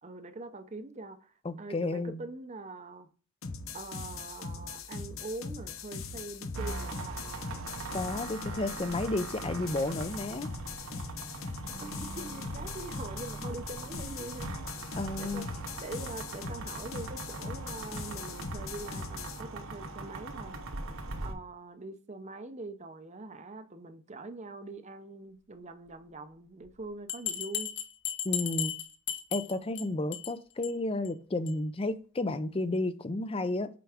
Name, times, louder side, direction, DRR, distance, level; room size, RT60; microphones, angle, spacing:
voice 1, 0.0-3.1 3.7-7.2 11.8-14.8 15.2-15.5 15.8-20.6 21.2-27.7, right 2 dB, 35° right, 0.6 m, -43 dB
voice 2, 1.4-2.2 7.9-10.5 15.0-15.4 28.2-28.8 29.3-33.7, left 2 dB, 25° left, 0.5 m, -32 dB
sound 1, 3.4-19.4, left 4 dB, 75° left, 0.8 m, -41 dB
sound 2, 6.5-21.3, right 2 dB, 80° right, 1.0 m, -41 dB
Bell, 27.1-29.8 30.1-30.3 30.6-30.7 31.0-31.1 31.5-31.6, left 10 dB, 55° left, 1.1 m, -34 dB
7.6 x 4.6 x 3.5 m
head